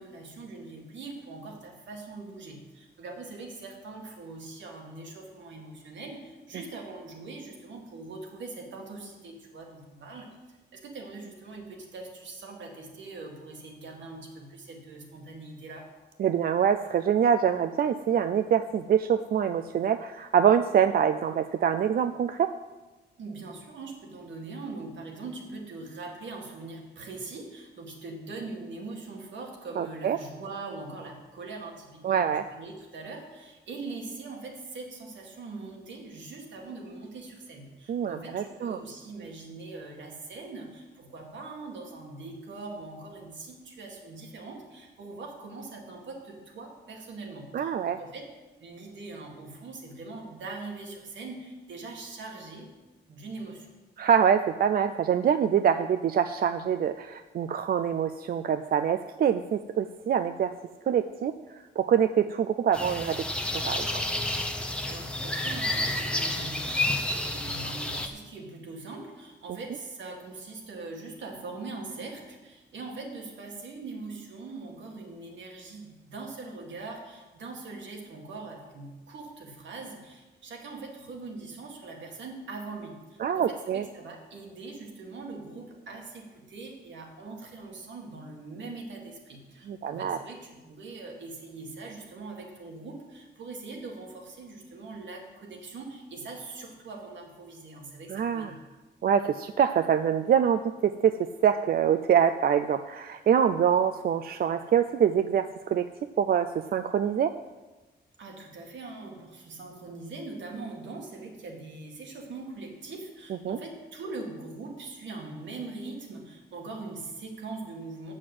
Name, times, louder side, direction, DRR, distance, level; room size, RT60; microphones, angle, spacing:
voice 1, 0.0-10.4 10.7-15.9 23.2-48.3 48.6-52.7 53.1-53.7 64.8-98.6 108.2-118.1, right 3 dB, 80° right, 1 dB, 2.0 m, -42 dB
voice 2, 16.2-22.5 29.8-30.2 32.0-32.4 37.9-38.8 47.5-48.0 54.0-60.5 60.9-64.0 83.2-83.8 89.7-90.2 98.1-98.5 99.0-105.9 106.2-107.3 113.5-113.6, right 8 dB, 55° right, 9 dB, 0.4 m, -25 dB
sound 1, 62.7-68.1, left 1 dB, 5° left, 0.8 m, -30 dB
7.7 x 6.3 x 7.7 m, 1.2 s
wide cardioid pair, 140°, 19 cm